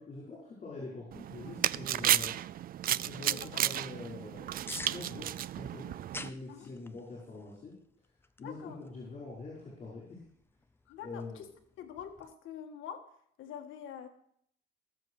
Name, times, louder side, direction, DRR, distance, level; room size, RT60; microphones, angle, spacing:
voice 1, 0.0-2.3 2.9-7.7 8.4-10.2 11.0-11.4, left 3 dB, 35° left, -5 dB, 5.5 m, -45 dB
sound 1, 1.1-6.3, right 12 dB, 45° right, 0.4 m, -33 dB
sound 2, 1.8-12.3, left 3 dB, 10° left, 0.7 m, -52 dB
voice 2, 3.3-3.6 6.5-6.7 8.4-8.8 10.9-11.5 11.8-13.1 13.4-14.1, left 8 dB, 70° left, 5 dB, 1.8 m, -45 dB
18.5 x 7.7 x 4.9 m, 0.67 s
cardioid pair, 120°, 21 cm